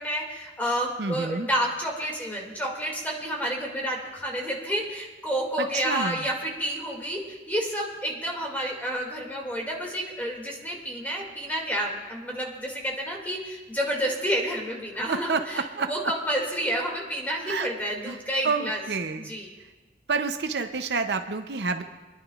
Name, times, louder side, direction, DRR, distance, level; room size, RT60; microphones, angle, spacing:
voice 1, 0.0-15.4 15.8-18.8 19.2-19.5, equal, 10° left, -2 dB, 2.2 m, -30 dB
voice 2, 1.0-1.5 5.6-6.3 15.1-15.9 17.5-17.7 18.0-18.2 18.4-19.3 19.6-19.7 20.1-21.8, right 4 dB, 65° right, 7 dB, 0.6 m, -28 dB
27.5 x 11.0 x 2.4 m, 1.2 s
head